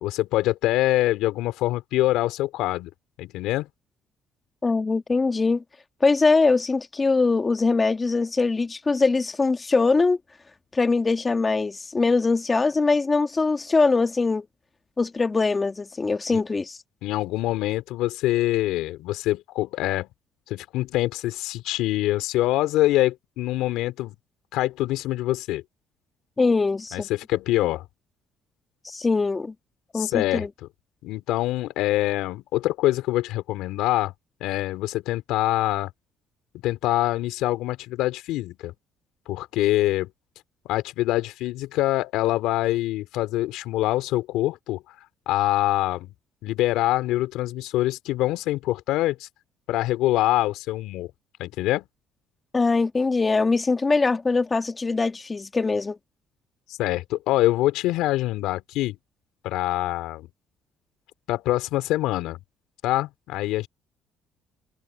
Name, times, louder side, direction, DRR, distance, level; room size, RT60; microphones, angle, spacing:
voice 1, 0.0-2.9 3.2-3.7 16.3-16.4 17.0-20.1 20.5-24.2 24.5-25.6 26.9-27.8 29.9-30.4 31.0-34.1 34.4-35.9 36.6-38.7 39.3-40.1 40.6-44.8 45.3-46.1 46.4-49.3 49.7-51.1 51.4-51.8 56.7-59.0 59.4-60.3 61.3-62.4 62.8-63.7, left 16 dB, 75° left, 2.8 m, -25 dB
voice 2, 4.6-5.6 6.0-10.2 10.7-14.5 15.0-16.8 26.4-27.1 28.8-29.5 29.9-30.5 52.5-56.0, left 3 dB, 25° left, 1.8 m, -22 dB
supercardioid pair, 65°, 0 cm